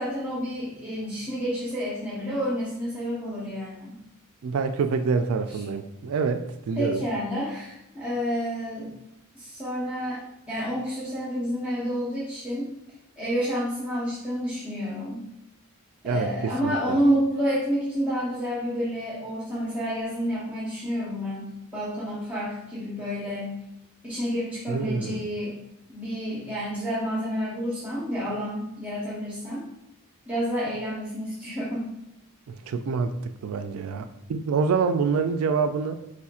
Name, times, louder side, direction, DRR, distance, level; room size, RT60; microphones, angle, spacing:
voice 1, 0.0-4.0 5.5-5.6 6.8-8.9 9.3-10.2 10.5-12.7 13.2-15.2 16.0-23.6 24.0-25.6 25.9-29.6 30.3-31.9, equal, 5° right, -8 dB, 1.0 m, -29 dB
voice 2, 4.4-7.0 16.0-17.0 24.7-25.2 32.5-36.0, right 5 dB, 70° right, 8 dB, 0.3 m, -26 dB
4.7 x 4.2 x 2.4 m, 0.88 s
head